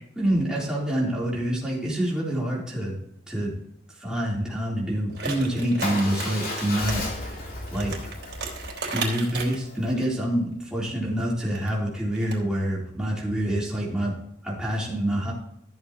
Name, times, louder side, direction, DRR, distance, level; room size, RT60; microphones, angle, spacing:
voice 1, 0.2-3.0 3.3-3.5 4.0-7.4 7.7-7.9 8.8-14.1 14.4-15.3, right 1 dB, 5° right, -5 dB, 3.8 m, -26 dB
sound 1, 5.1-7.0 7.2-7.3 7.7-10.1 11.4-11.7 12.1-12.4, right 4 dB, 75° right, 3.6 m, -34 dB
Motorcycle / Engine starting / Idling, 5.8-9.9, left 2 dB, 55° left, 3.2 m, -34 dB
14.5 x 7.9 x 3.1 m, 0.75 s
head